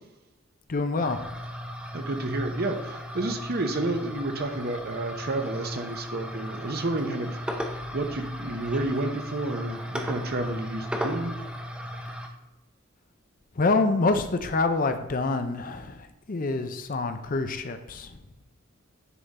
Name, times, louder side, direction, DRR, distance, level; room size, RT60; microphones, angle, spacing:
voice 1, 0.7-1.2 13.6-18.2, left 3 dB, 40° left, 8 dB, 0.5 m, -26 dB
sound 1, 1.0-12.3, equal, 5° right, 0.6 m, -36 dB
voice 2, 1.9-7.4 7.9-11.4, right 2 dB, 45° right, 6 dB, 0.8 m, -30 dB
9.9 x 3.8 x 4.1 m, 1.0 s
head